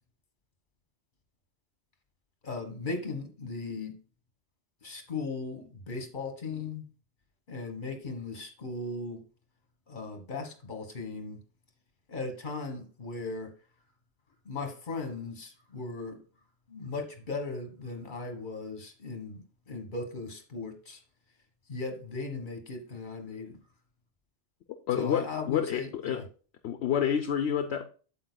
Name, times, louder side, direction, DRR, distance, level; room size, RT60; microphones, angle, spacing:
voice 1, 2.4-4.0 4.8-6.8 7.5-9.2 9.9-11.4 12.1-13.5 14.4-16.2 16.7-21.0 21.7-23.6 24.9-26.2, left 3 dB, 45° left, 1.5 m, -37 dB
voice 2, 24.9-26.2 26.6-27.9, left 8 dB, 70° left, 0.9 m, -29 dB
8.8 x 7.5 x 2.2 m
omnidirectional pair, 1.2 m